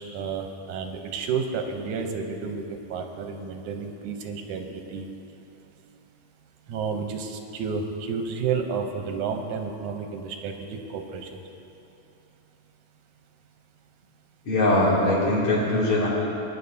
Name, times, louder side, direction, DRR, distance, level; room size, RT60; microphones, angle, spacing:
voice 1, 0.0-5.1 6.7-11.3, right 5 dB, 90° right, 4 dB, 2.2 m, -31 dB
voice 2, 14.4-16.1, left 1 dB, 70° left, -6 dB, 4.1 m, -21 dB
20.0 x 9.9 x 2.7 m, 2.9 s
omnidirectional pair, 3.4 m